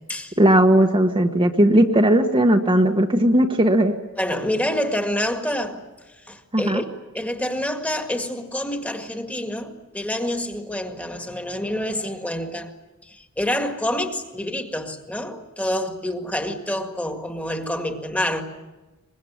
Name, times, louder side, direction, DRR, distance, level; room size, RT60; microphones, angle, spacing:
voice 1, 0.4-3.9 6.5-6.8, right 1 dB, 25° right, 1.3 m, -17 dB
voice 2, 4.2-12.7 13.0-18.4, left 1 dB, 5° left, 1.9 m, -27 dB
24.0 x 22.0 x 8.7 m
head